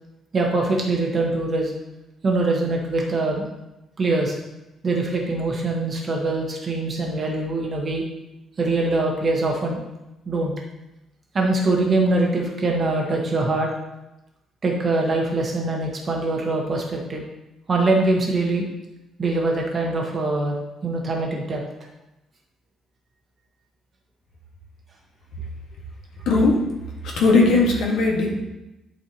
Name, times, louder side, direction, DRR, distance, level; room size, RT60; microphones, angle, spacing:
voice 1, 0.3-1.7 2.2-3.5 4.0-4.4 4.8-8.0 8.6-9.8 10.3-10.5 11.3-13.7 14.6-17.2 17.7-18.6 19.2-20.5 20.8-21.6, right 2 dB, 30° right, -1 dB, 1.2 m, -23 dB
voice 2, 26.2-26.6 27.0-28.4, left 3 dB, 70° left, -1 dB, 1.6 m, -18 dB
11.5 x 4.4 x 2.9 m, 0.96 s
cardioid pair, 170°, 0 cm